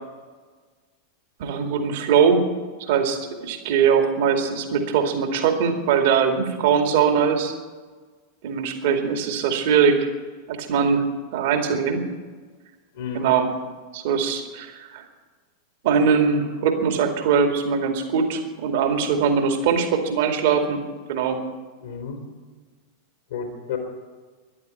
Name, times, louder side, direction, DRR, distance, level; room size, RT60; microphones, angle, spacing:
voice 1, 1.4-2.4 2.9-7.5 8.4-10.1 10.5-11.1 11.3-12.0 13.1-13.5 13.9-15.0 15.8-20.8 21.1-21.4, right 6 dB, 50° right, 5 dB, 2.2 m, -21 dB
voice 2, 12.9-13.3 21.8-22.2 23.3-23.8, left 6 dB, 60° left, 1 dB, 3.2 m, -31 dB
13.5 x 11.5 x 9.4 m, 1.4 s
figure-of-eight pair, 90°, 0 cm